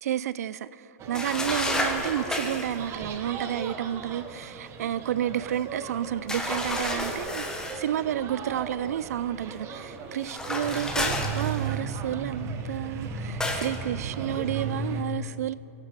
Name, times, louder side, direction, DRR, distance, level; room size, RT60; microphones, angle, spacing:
voice 1, 0.0-7.5 7.7-15.5, right 11 dB, 80° right, 0.3 m, -31 dB
sound 1, 1.0-15.0, right 4 dB, 35° right, 0.9 m, -37 dB
sound 2, 1.1-2.8 6.3-7.8 10.2-11.9 13.4-13.8, left 1 dB, 10° left, 1.1 m, -30 dB
16.0 x 6.6 x 4.8 m
hypercardioid pair, 125°, 8 cm